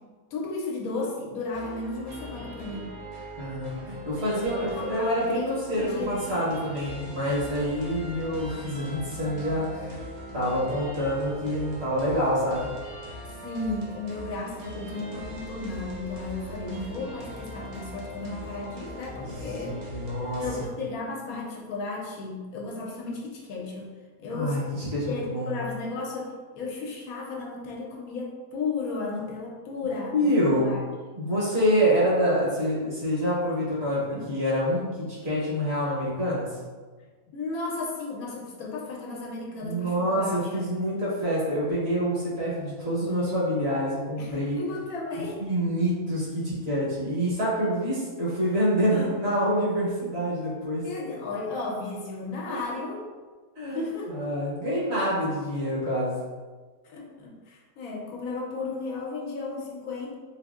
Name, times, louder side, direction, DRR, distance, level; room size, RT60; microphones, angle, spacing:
voice 1, 0.3-2.9 4.6-6.1 13.4-19.7 20.3-23.9 24.2-24.6 25.1-30.8 31.1-31.3 34.1-34.3 37.3-40.7 44.2-45.4 48.9-49.1 50.8-53.0 53.7-54.3 56.8-60.1, left 3 dB, 75° left, -1 dB, 1.1 m, -34 dB
sound 1, 1.5-20.7, equal, 80° right, 1.2 m, -41 dB
voice 2, 3.4-10.0 10.3-12.7 19.2-20.7 24.3-25.6 29.8-30.8 31.2-36.5 39.6-44.6 45.4-50.8 52.5-52.6 53.6-56.2, equal, 50° right, -7 dB, 1.2 m, -27 dB
4.0 x 2.6 x 2.4 m, 1.4 s
omnidirectional pair, 1.5 m